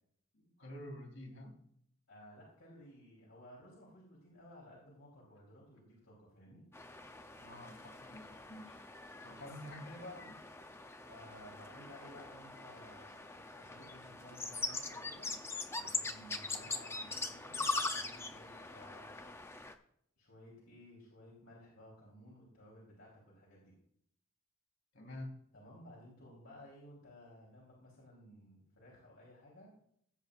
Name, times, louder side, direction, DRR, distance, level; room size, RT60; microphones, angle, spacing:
voice 1, 0.3-1.6 7.4-8.8 9.2-10.4 24.9-25.4, left 1 dB, 60° left, 2 dB, 2.6 m, -48 dB
voice 2, 2.1-6.6 9.1-9.5 11.1-15.5 15.8-19.4 19.6-19.8 20.2-23.8 25.5-29.7, equal, 80° left, -5 dB, 3.5 m, -57 dB
sound 1, 6.7-19.7, left 3 dB, 10° left, 0.6 m, -42 dB
16.5 x 8.1 x 2.5 m, 0.67 s
head